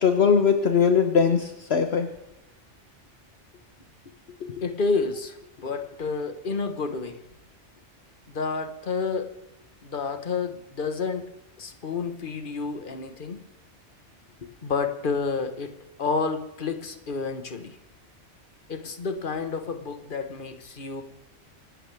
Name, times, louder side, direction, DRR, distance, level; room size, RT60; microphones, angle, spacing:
voice 1, 0.0-2.1 4.4-4.6, left 6 dB, 60° left, 6 dB, 1.3 m, -21 dB
voice 2, 4.6-7.2 8.3-9.3 9.8-11.3 11.6-13.4 14.4-15.7 16.0-17.8 18.7-21.0, left 4 dB, 45° left, 7 dB, 1.5 m, -30 dB
25.0 x 12.5 x 3.5 m, 0.92 s
omnidirectional pair, 1.2 m